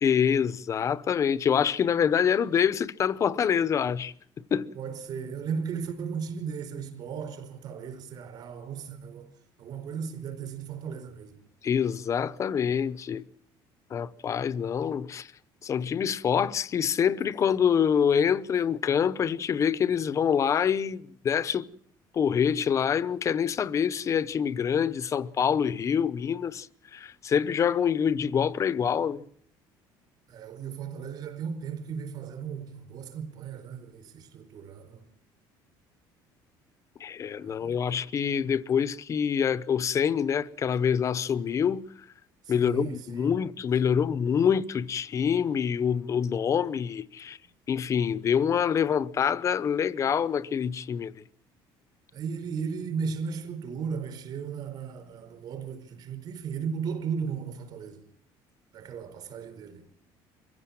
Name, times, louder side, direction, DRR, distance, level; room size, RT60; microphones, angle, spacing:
voice 1, 0.0-4.1 4.5-4.7 11.6-13.2 13.9-15.3 15.6-21.7 22.1-26.7 26.9-29.2 37.0-41.8 42.5-47.4 47.7-51.2, left 7 dB, 35° left, 0.9 m, -26 dB
voice 2, 4.7-9.3 9.6-11.4 30.3-35.0 37.4-37.8 42.4-43.4 52.1-58.0 58.7-59.8, right 6 dB, 50° right, 4.7 m, -36 dB
24.0 x 16.0 x 7.6 m
cardioid pair, 135°, 9 cm